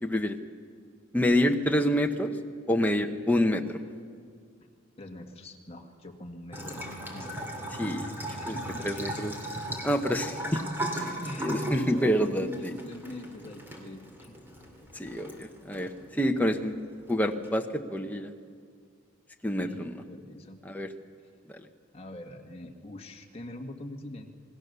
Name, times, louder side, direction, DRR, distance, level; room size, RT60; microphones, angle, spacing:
voice 1, 0.0-0.4 1.1-2.4 2.7-3.8 7.8-8.6 8.8-9.3 9.8-10.6 11.0-12.7 14.9-16.8 17.1-18.3 19.4-19.9 20.6-20.9, equal, 10° left, 4 dB, 1.0 m, -27 dB
voice 2, 5.0-7.4 8.4-9.2 11.2-14.5 19.6-20.6 21.9-24.3, left 1 dB, 25° left, 2 dB, 1.9 m, -43 dB
Bathtub (filling or washing) / Trickle dribble, 6.5-17.5, right 1 dB, 10° right, 2.6 m, -38 dB
27.5 x 20.0 x 6.9 m, 2.1 s
head